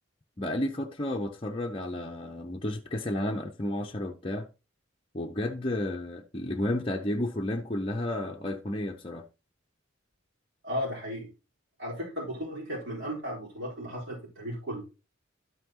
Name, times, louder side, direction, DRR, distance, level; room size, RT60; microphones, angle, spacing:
voice 1, 0.4-4.5 5.1-9.2, left 1 dB, 25° left, 0.7 m, -32 dB
voice 2, 10.6-11.3 11.8-14.8, equal, 60° right, 4.3 m, -35 dB
12.5 x 5.7 x 3.0 m
head